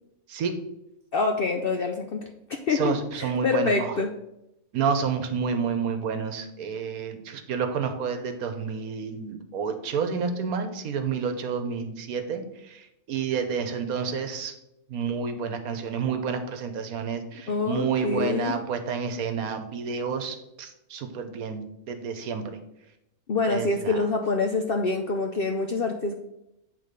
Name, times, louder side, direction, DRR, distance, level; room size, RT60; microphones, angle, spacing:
voice 1, 1.1-2.2 2.5-4.1 17.5-18.5 23.3-26.1, left 3 dB, 60° left, 3 dB, 0.6 m, -26 dB
voice 2, 2.7-4.0 4.7-14.5 14.9-22.6 23.5-24.0, right 6 dB, 75° right, 7 dB, 1.3 m, -29 dB
8.4 x 3.9 x 5.1 m, 0.87 s
omnidirectional pair, 1.6 m